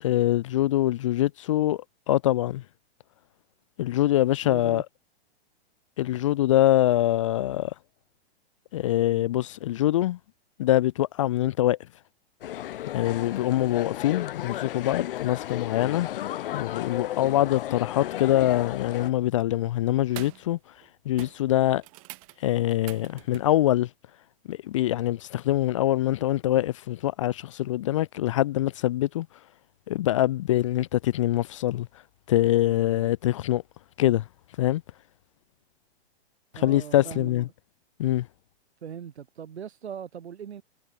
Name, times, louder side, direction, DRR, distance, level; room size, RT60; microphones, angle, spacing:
voice 1, 0.0-2.6 3.8-4.8 6.0-7.7 8.7-10.2 10.6-11.8 12.9-16.1 16.5-20.6 21.1-21.8 22.4-23.9 24.5-29.3 29.9-31.9 32.3-33.6 34.0-34.2 34.6-34.8 36.5-37.5 38.0-38.3, left 14 dB, 30° left, 0.5 m, -24 dB
voice 2, 4.4-4.8 36.5-37.3 38.8-40.6, right 8 dB, 85° right, 6.8 m, -39 dB
sound 1, 12.4-19.1, left 13 dB, 60° left, 0.8 m, -34 dB
sound 2, 19.3-19.6 20.0-20.5 20.8-20.9 21.2-23.6 25.6-25.7, right 25 dB, 35° right, 1.8 m, -45 dB
hypercardioid pair, 160°, 32 cm